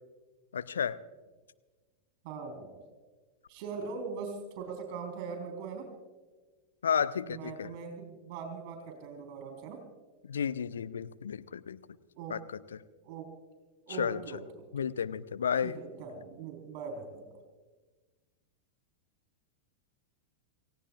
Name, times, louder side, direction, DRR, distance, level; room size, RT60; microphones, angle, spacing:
voice 1, 0.5-1.0 6.8-7.7 10.3-11.8 12.3-12.4 14.0-14.2 14.7-15.7, left 7 dB, 70° left, 14 dB, 0.6 m, -32 dB
voice 2, 2.2-2.8 3.5-5.9 7.2-9.8 12.2-12.4 13.0-13.3 13.9-14.8 15.6-17.4, right 5 dB, 45° right, 5 dB, 3.9 m, -41 dB
28.5 x 16.5 x 2.4 m, 1.3 s
figure-of-eight pair, 90°, 0 cm